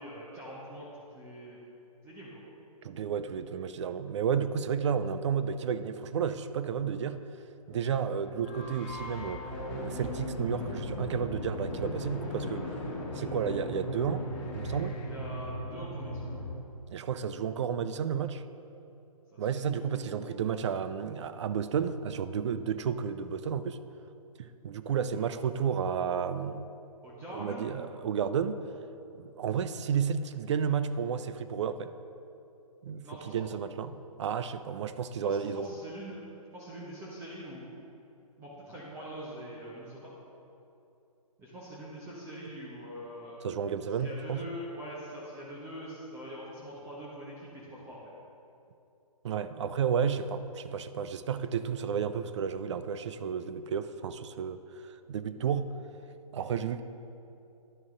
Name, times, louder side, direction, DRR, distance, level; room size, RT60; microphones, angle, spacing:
voice 1, 0.0-1.6 2.0-2.4 13.1-13.3 15.1-16.3 19.3-20.3 25.1-25.2 27.0-27.7 33.0-33.4 35.2-36.2 36.5-37.7 38.4-40.1 41.4-43.4 44.0-48.0, equal, 15° right, -7 dB, 1.1 m, -44 dB
voice 2, 2.8-7.2 7.7-12.8 13.1-14.3 14.5-15.0 16.6-18.4 19.4-23.8 24.4-26.7 27.3-28.6 29.1-31.9 32.8-35.7 43.4-44.4 49.2-55.7 56.3-56.8, right 7 dB, 50° right, 12 dB, 0.4 m, -32 dB
sound 1, 7.7-16.5, left 1 dB, 30° left, 1.8 m, -38 dB
11.0 x 6.1 x 3.8 m, 2.7 s
hypercardioid pair, 145°, 19 cm